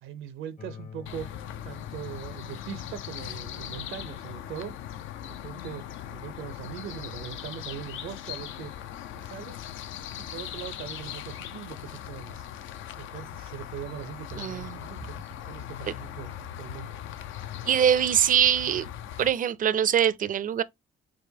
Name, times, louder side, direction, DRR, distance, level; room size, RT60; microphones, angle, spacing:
voice 1, 0.0-4.7 5.2-5.9 6.1-8.7 9.2-9.6 10.2-12.5 13.0-15.1 15.5-17.0, right 10 dB, 90° right, 0.6 m, -41 dB
sound 1, 0.6-10.5, left 7 dB, 40° left, 0.8 m, -49 dB
sound 2, 1.1-19.3, left 10 dB, 80° left, 0.5 m, -40 dB
voice 2, 14.4-14.8 17.7-18.9 19.2-20.6, right 9 dB, 45° right, 0.4 m, -23 dB
4.8 x 2.2 x 2.7 m
cardioid pair, 90°, 20 cm